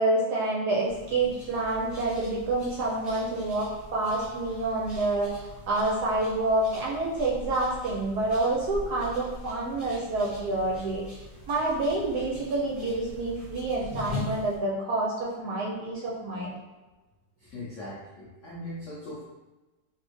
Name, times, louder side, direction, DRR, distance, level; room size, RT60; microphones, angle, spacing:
voice 1, 0.0-5.4 5.7-11.0 11.5-16.5, right 2 dB, 70° right, -4 dB, 1.0 m, -28 dB
sound 1, 0.9-14.6, equal, ahead, 1.0 m, -42 dB
voice 2, 17.4-19.2, left 1 dB, 80° left, -6 dB, 0.6 m, -40 dB
3.4 x 2.5 x 3.0 m, 1.1 s
omnidirectional pair, 2.1 m